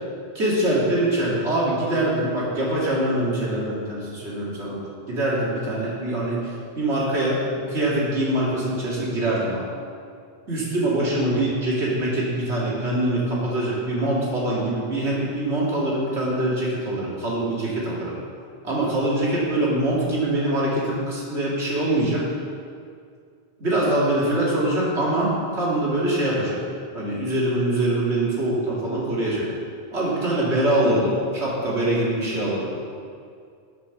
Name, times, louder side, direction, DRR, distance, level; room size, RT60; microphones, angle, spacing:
voice 1, 0.3-9.6 10.5-18.2 18.6-22.3 23.6-26.6 26.9-29.5 29.9-32.7, right 1 dB, 80° right, -6 dB, 2.5 m, -24 dB
9.6 x 5.6 x 6.7 m, 2.2 s
omnidirectional pair, 1.1 m